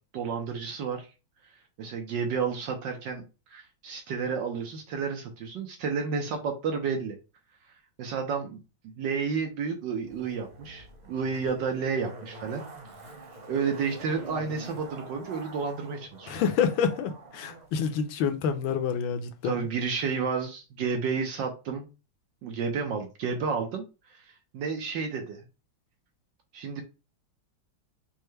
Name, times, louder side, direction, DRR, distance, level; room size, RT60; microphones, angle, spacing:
voice 1, 0.1-1.1 1.8-3.2 3.5-7.2 8.0-12.6 13.5-16.3 19.4-21.9 22.4-25.5 26.5-26.8, right 5 dB, 70° right, 1.3 m, -31 dB
Zipper (clothing), 10.0-17.7 18.0-18.1, right 2 dB, 50° right, 0.5 m, -45 dB
voice 2, 16.3-19.7, left 7 dB, 75° left, 1.4 m, -28 dB
5.5 x 2.1 x 3.2 m
omnidirectional pair, 2.2 m